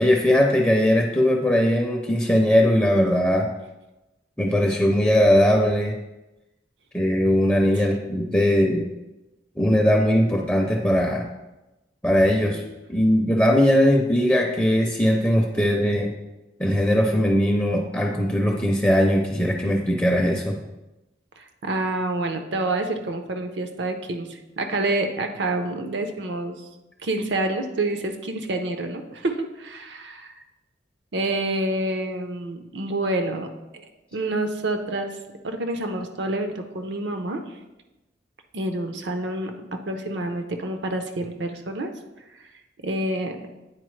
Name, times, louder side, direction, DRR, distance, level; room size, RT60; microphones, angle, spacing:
voice 1, 0.0-3.5 4.4-5.9 6.9-8.8 9.6-11.2 12.0-12.6 12.9-16.1 16.6-20.6, equal, 10° left, 1 dB, 0.5 m, -20 dB
voice 2, 21.4-26.6 27.0-30.4 31.1-33.5 33.7-35.2 35.4-37.4 38.5-39.5 39.9-41.9 42.8-43.4, right 2 dB, 75° right, 6 dB, 0.7 m, -28 dB
9.0 x 4.2 x 3.1 m, 1.0 s
head